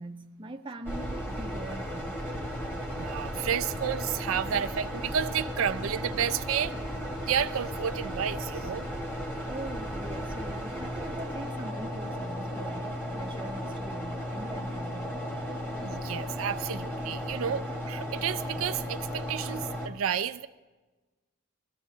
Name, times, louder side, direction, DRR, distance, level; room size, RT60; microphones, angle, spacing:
voice 1, 0.0-2.3 9.4-15.2, right 1 dB, 25° right, 0.6 m, -42 dB
sound 1, 0.8-19.9, equal, 10° left, 1.4 m, -35 dB
voice 2, 3.0-6.7 7.3-8.8 15.8-20.5, right 8 dB, 70° right, 0.4 m, -31 dB
21.5 x 14.5 x 2.7 m
head